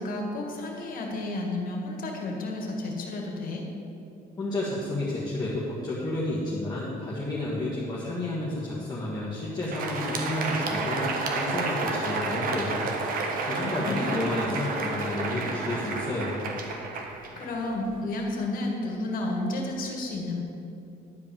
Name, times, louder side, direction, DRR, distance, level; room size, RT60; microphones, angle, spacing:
voice 1, 0.0-3.6 13.6-14.3 17.4-20.4, left 2 dB, 55° left, 1 dB, 1.9 m, -31 dB
voice 2, 4.4-11.1 11.3-12.9 13.4-16.5, left 1 dB, 25° left, -7 dB, 1.7 m, -31 dB
Crowd, 9.5-18.0, right 3 dB, 60° right, 1.2 m, -31 dB
11.0 x 4.7 x 7.2 m, 2.7 s
cardioid pair, 110°, 17 cm